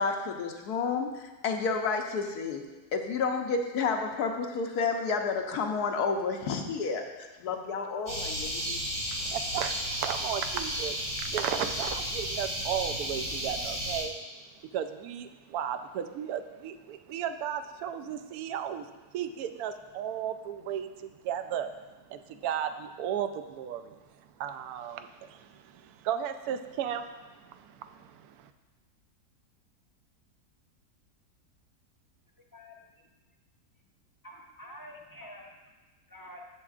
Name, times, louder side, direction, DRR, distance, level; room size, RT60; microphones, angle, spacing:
voice 1, 0.0-2.6 2.9-8.9, left 4 dB, 75° left, 4 dB, 1.2 m, -30 dB
sound 1, 8.1-14.0, equal, 15° right, 2.7 m, -33 dB
voice 2, 9.2-14.1 14.7-18.9 19.1-21.7 22.1-24.0 24.4-28.5, right 9 dB, 75° right, 9 dB, 1.0 m, -35 dB
voice 3, 32.5-32.8 34.2-35.7 36.1-36.4, equal, 20° left, -1 dB, 0.5 m, -47 dB
11.0 x 7.1 x 2.4 m, 1.2 s
omnidirectional pair, 1.7 m